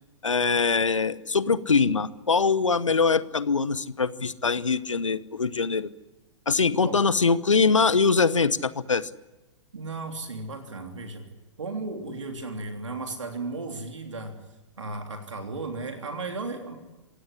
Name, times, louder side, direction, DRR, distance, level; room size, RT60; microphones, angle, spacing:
voice 1, 0.2-5.9 6.5-9.1, left 4 dB, 80° left, 18 dB, 0.9 m, -23 dB
voice 2, 9.7-11.2 11.6-14.4 14.8-16.8, right 3 dB, 75° right, 4 dB, 3.2 m, -35 dB
26.0 x 17.0 x 10.0 m, 1.1 s
figure-of-eight pair, 105°, 16 cm